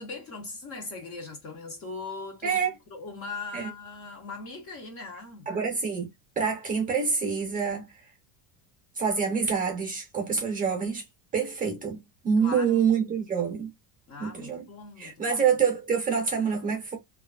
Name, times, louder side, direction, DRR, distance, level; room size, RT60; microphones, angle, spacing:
voice 1, 0.0-2.6 2.9-5.5 12.4-12.8 14.1-15.4, left 3 dB, 30° left, 0.6 m, -40 dB
voice 2, 2.4-2.7 3.5-3.7 5.5-6.1 6.4-7.9 9.0-11.0 11.3-13.7 14.2-14.6 15.0-17.0, right 6 dB, 20° right, 0.6 m, -26 dB
2.6 x 2.3 x 2.2 m
cardioid pair, 165°, 45 cm